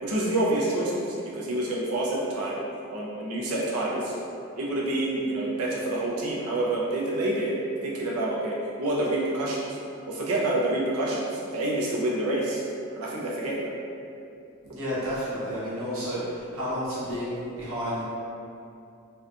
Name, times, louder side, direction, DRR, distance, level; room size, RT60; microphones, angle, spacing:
voice 1, 0.0-2.6 2.9-4.2 4.6-9.6 10.1-12.6 13.0-13.7, right 1 dB, 85° right, -5 dB, 0.6 m, -27 dB
voice 2, 14.7-16.2 16.5-18.0, equal, 65° right, -10 dB, 0.9 m, -31 dB
2.7 x 2.2 x 2.5 m, 2.6 s
head